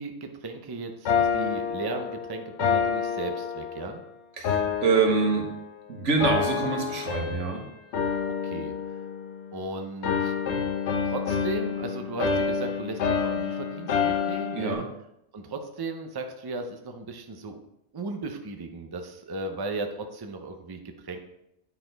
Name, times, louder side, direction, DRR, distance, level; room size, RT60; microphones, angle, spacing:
voice 1, 0.0-4.0 8.4-8.7 9.5-10.3 11.0-14.8 15.3-17.6 17.9-21.2, right 3 dB, 25° right, 5 dB, 0.5 m, -36 dB
sound 1, 1.1-4.0 4.4-5.8 6.2-7.6 7.9-9.7 10.0-14.7, left 6 dB, 75° left, 1.0 m, -28 dB
voice 2, 4.4-5.5 5.9-7.7 14.5-14.8, right 4 dB, 85° right, 2 dB, 1.5 m, -25 dB
9.2 x 4.1 x 3.9 m, 0.82 s
omnidirectional pair, 1.2 m